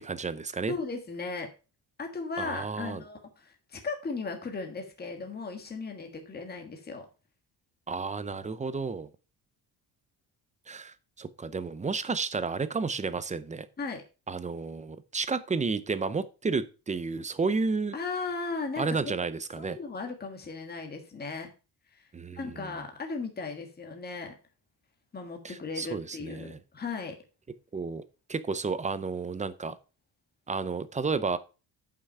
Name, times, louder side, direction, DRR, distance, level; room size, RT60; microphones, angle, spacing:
voice 1, 0.0-0.7 2.4-3.0 7.9-9.1 10.7-13.7 14.3-18.0 18.8-19.8 22.1-22.7 25.4-26.6 27.7-28.0 28.3-29.8 30.5-31.4, right 4 dB, 20° right, 14 dB, 0.5 m, -32 dB
voice 2, 0.7-1.5 2.0-7.1 13.8-14.0 17.9-19.1 19.6-21.5 21.9-24.3 25.1-27.2, left 4 dB, 25° left, 4 dB, 1.6 m, -36 dB
8.2 x 5.8 x 5.5 m, 0.33 s
cardioid pair, 150°, 39 cm